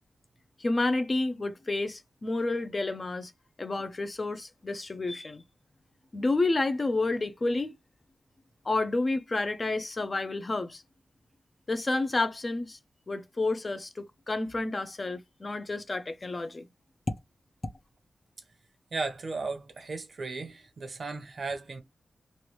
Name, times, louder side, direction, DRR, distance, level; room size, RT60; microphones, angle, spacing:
voice 1, 0.6-3.3 3.6-5.4 6.1-7.7 8.6-10.8 11.7-12.8 13.1-16.7, left 2 dB, 30° left, 0.6 m, -30 dB
voice 2, 18.9-21.8, right 3 dB, 55° right, 0.9 m, -35 dB
3.1 x 2.5 x 3.0 m
wide cardioid pair, 120°, 0 cm